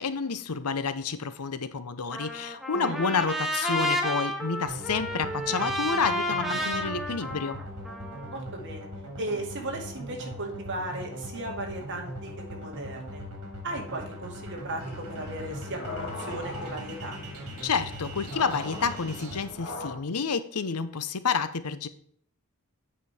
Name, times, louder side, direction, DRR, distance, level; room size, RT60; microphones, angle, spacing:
voice 1, 0.0-7.6 17.6-21.9, left 5 dB, 85° left, 12 dB, 0.8 m, -29 dB
Trumpet, 2.1-8.4, equal, ahead, 1.1 m, -31 dB
sound 1, 4.7-19.4, equal, 80° right, 3.0 m, -40 dB
voice 2, 8.3-8.9 9.2-13.2 13.6-17.2, right 1 dB, 55° right, 1 dB, 2.3 m, -36 dB
sound 2, 14.8-20.0, left 2 dB, 65° left, 2.3 m, -40 dB
8.6 x 5.3 x 4.3 m, 0.63 s
head